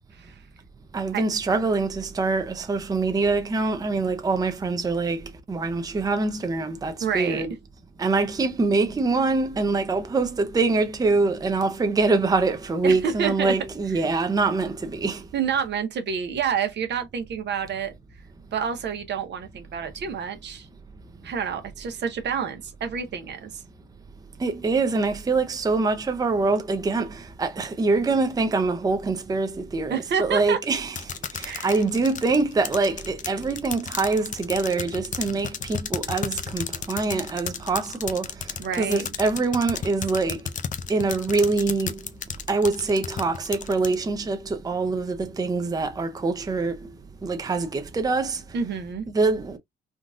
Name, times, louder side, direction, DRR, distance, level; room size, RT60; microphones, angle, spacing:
voice 1, 0.9-7.5 8.0-15.2 24.4-31.0 31.3-38.3 38.7-40.4 40.9-42.0 42.5-46.7 47.2-48.4 49.1-49.6, right 3 dB, 20° right, 0.6 m, -24 dB
voice 2, 7.0-7.5 12.8-13.5 15.3-17.9 18.5-20.7 21.2-23.6 29.9-30.6 31.4-31.7 38.6-39.0 48.5-49.0, right 7 dB, 60° right, 0.9 m, -28 dB
sound 1, 31.0-43.9, left 7 dB, 40° left, 0.5 m, -33 dB
3.7 x 2.4 x 2.4 m
cardioid pair, 90°, 20 cm